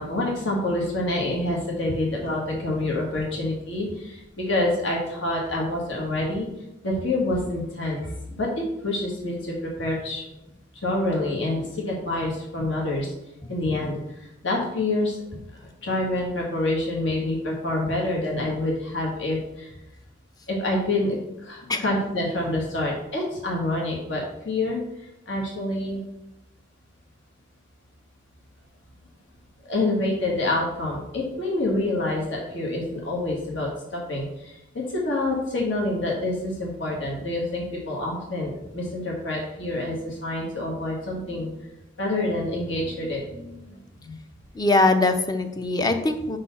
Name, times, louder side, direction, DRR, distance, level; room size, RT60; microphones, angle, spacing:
voice 1, 0.0-6.5 6.8-10.2 10.8-13.1 13.5-15.2 15.8-19.7 20.5-24.8 25.3-26.0 29.6-41.5 42.0-44.2, left 2 dB, 70° left, -2 dB, 1.5 m, -27 dB
voice 2, 44.5-46.4, left 2 dB, 20° left, 8 dB, 0.5 m, -21 dB
5.2 x 4.1 x 5.7 m, 0.88 s
head